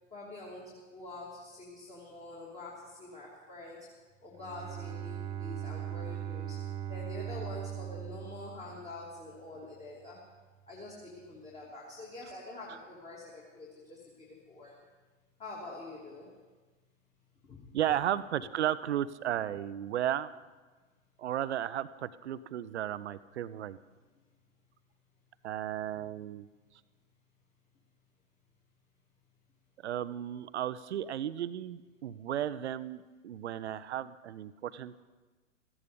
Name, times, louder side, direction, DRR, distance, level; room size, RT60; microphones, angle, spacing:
voice 1, 0.1-3.9 4.2-10.3 10.7-14.8 15.4-16.3 17.5-17.6 18.3-18.5, left 2 dB, 15° left, -4 dB, 3.0 m, -46 dB
Bowed string instrument, 4.3-9.3, right 10 dB, 15° right, 0.7 m, -40 dB
voice 2, 17.7-20.3 21.2-23.8 25.4-26.5 29.8-35.0, right 11 dB, 60° right, 16 dB, 0.8 m, -34 dB
17.0 x 15.0 x 5.2 m, 1.3 s
figure-of-eight pair, 105°, 39 cm